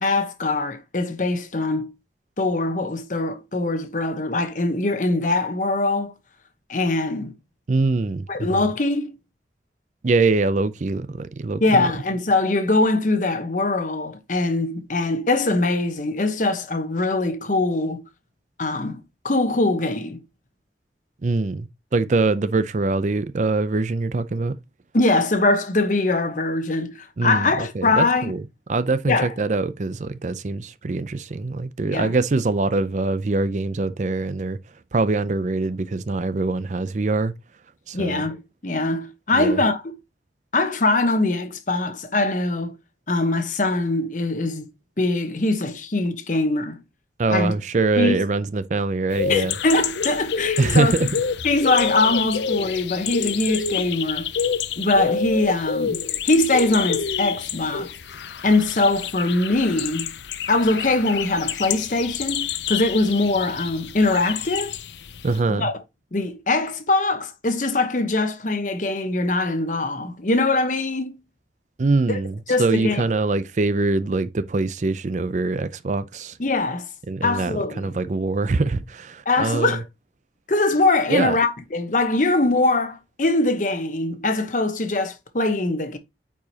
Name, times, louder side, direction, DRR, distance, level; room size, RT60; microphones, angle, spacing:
voice 1, 0.0-1.9 2.4-6.1 6.7-7.3 8.3-9.1 11.6-18.0 18.6-20.2 24.9-28.3 29.1-29.3 31.9-32.1 37.9-39.8 40.5-42.7 43.1-44.7 45.0-46.8 47.3-47.5 48.0-48.2 49.3-50.9 51.4-54.3 54.8-57.9 58.4-60.1 60.5-64.7 65.5-65.7 66.1-71.2 72.1-72.2 72.5-73.0 76.4-76.9 77.2-77.9 79.3-79.8 80.5-86.0, left 2 dB, 45° left, 0.9 m, -22 dB
voice 2, 7.7-8.7 10.0-11.9 21.2-24.5 27.2-28.4 28.7-34.6 34.9-37.3 37.9-38.2 39.3-39.6 47.2-49.5 50.6-51.1 65.2-65.7 71.8-76.4 77.1-79.8 81.1-81.4, right 3 dB, 40° right, 0.4 m, -23 dB
sound 1, 49.1-65.4, left 7 dB, 75° left, 0.5 m, -28 dB
9.0 x 4.8 x 2.8 m
head